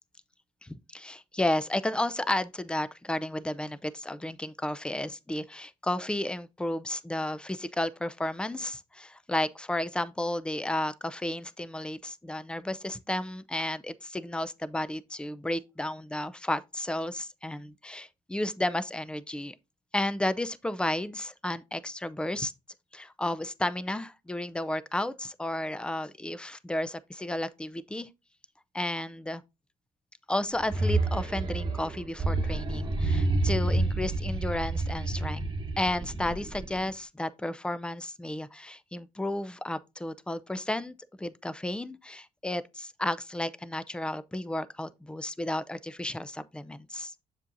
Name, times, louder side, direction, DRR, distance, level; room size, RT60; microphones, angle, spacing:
voice 1, 0.6-19.5 19.9-22.5 22.9-28.1 28.7-29.4 30.3-47.1, left 1 dB, 5° left, 0.5 m, -33 dB
sound 1, 30.5-36.9, right 2 dB, 30° right, 1.2 m, -29 dB
7.3 x 7.0 x 2.6 m
cardioid pair, 100°, 15 cm